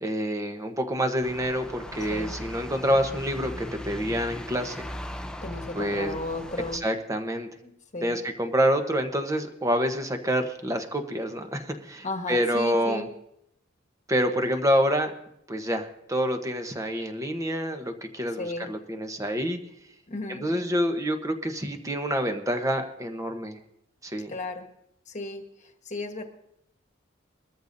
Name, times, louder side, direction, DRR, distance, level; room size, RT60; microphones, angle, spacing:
voice 1, 0.0-4.8 5.7-6.2 6.8-7.5 8.0-13.0 14.1-15.1 15.5-19.6 20.3-23.6 24.0-24.3, equal, 15° right, 6 dB, 1.0 m, -27 dB
sound 1, 1.2-6.8, equal, 5° left, 0.6 m, -38 dB
voice 2, 5.4-6.8 7.6-8.2 12.0-13.1 18.4-18.7 20.1-20.5 24.3-24.7 25.1-26.2, left 2 dB, 40° left, 5 dB, 1.4 m, -35 dB
22.0 x 13.5 x 2.7 m, 0.77 s
head